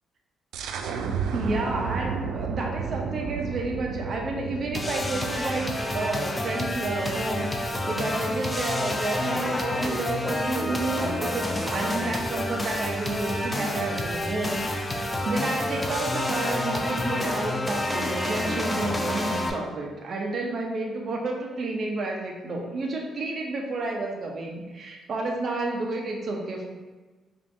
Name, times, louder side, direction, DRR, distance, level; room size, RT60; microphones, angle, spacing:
sound 1, 0.5-6.0, right 5 dB, 85° right, 0.3 m, -32 dB
voice 1, 1.3-26.7, right 2 dB, 50° right, 0 dB, 0.6 m, -31 dB
sound 2, 4.7-19.5, left 1 dB, 15° left, 0.5 m, -29 dB
5.1 x 2.6 x 2.6 m, 1.3 s
cardioid pair, 90°, 0 cm